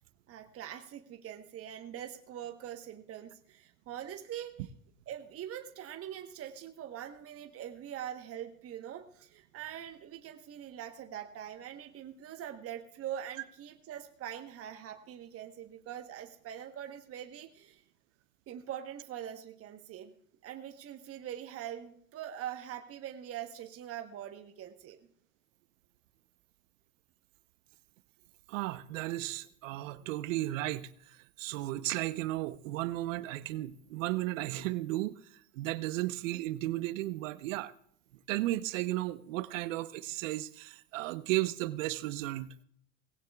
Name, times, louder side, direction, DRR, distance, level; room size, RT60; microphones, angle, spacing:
voice 1, 0.3-4.7 5.1-17.8 18.5-20.1 20.4-25.1, right 10 dB, 35° right, 1.2 m, -43 dB
voice 2, 28.5-35.2 35.5-37.7 38.3-42.5, right 17 dB, 65° right, 0.9 m, -34 dB
19.0 x 16.5 x 2.4 m
hypercardioid pair, 95°, 41 cm